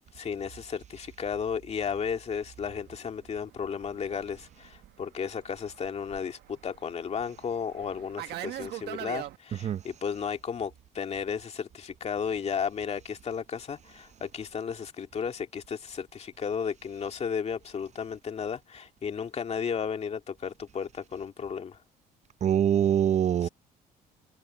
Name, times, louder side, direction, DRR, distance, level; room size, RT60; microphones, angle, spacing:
voice 1, 0.0-21.8 23.4-23.5, left 6 dB, 40° left, 2.2 m, -34 dB
Fixed-wing aircraft airplane, 2.8-9.4, right 14 dB, 75° right, 1.3 m, -42 dB
voice 2, 22.4-23.5, right 9 dB, 40° right, 0.6 m, -23 dB
cardioid pair, 110°, 17 cm